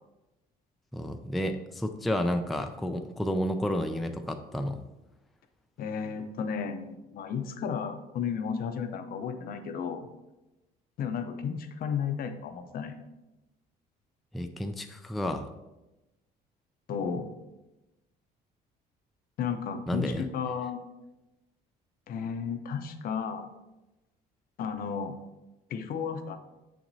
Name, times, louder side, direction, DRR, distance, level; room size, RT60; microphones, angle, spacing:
voice 1, 0.9-4.8 14.3-15.5 19.9-20.3, equal, ahead, 6 dB, 0.3 m, -31 dB
voice 2, 5.8-10.1 11.0-13.0 16.9-17.3 19.4-20.8 22.1-23.5 24.6-25.2 25.7-26.4, left 6 dB, 60° left, 8 dB, 0.7 m, -33 dB
7.1 x 5.9 x 2.7 m, 1.0 s
cardioid pair, 110°, 17 cm